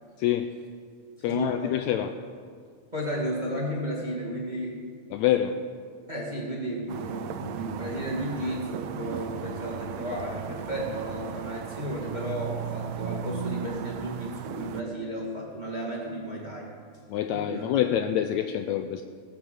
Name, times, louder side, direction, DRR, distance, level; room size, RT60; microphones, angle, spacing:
voice 1, 0.2-0.5 1.2-2.1 5.1-5.6 17.1-19.0, left 11 dB, 85° left, 8 dB, 1.6 m, -26 dB
voice 2, 1.2-1.8 2.9-4.8 6.1-16.7 17.3-17.9, equal, 15° right, -3 dB, 1.7 m, -33 dB
sound 1, 6.9-14.8, right 7 dB, 75° right, 1.6 m, -36 dB
20.0 x 6.8 x 7.7 m, 2.1 s
omnidirectional pair, 3.8 m